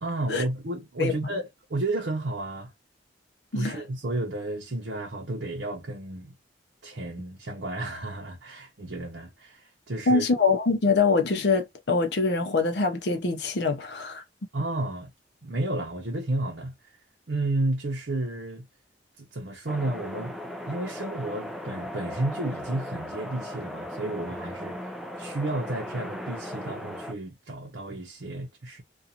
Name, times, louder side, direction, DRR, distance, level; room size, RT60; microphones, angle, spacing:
voice 1, 0.0-1.4 1.7-2.7 3.5-6.3 6.8-10.3 14.5-15.1 15.4-16.7 17.3-18.7 19.2-20.3 20.7-24.9 25.2-28.8, right 2 dB, 75° right, 0.7 m, -32 dB
voice 2, 10.1-14.2, left 4 dB, 70° left, 0.6 m, -24 dB
sound 1, 19.7-27.1, equal, ahead, 0.4 m, -37 dB
2.5 x 2.3 x 2.8 m
head